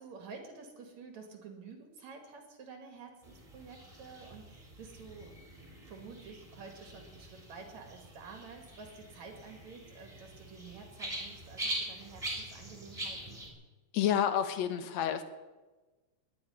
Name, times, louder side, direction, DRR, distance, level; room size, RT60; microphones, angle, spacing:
voice 1, 0.0-5.3 5.9-13.4, right 5 dB, 70° right, 4 dB, 3.3 m, -50 dB
sound 1, 3.2-13.5, right 1 dB, 10° right, 3.2 m, -43 dB
voice 2, 13.9-15.2, left 9 dB, 70° left, 10 dB, 2.2 m, -29 dB
19.5 x 6.8 x 9.8 m, 1.2 s
omnidirectional pair, 3.4 m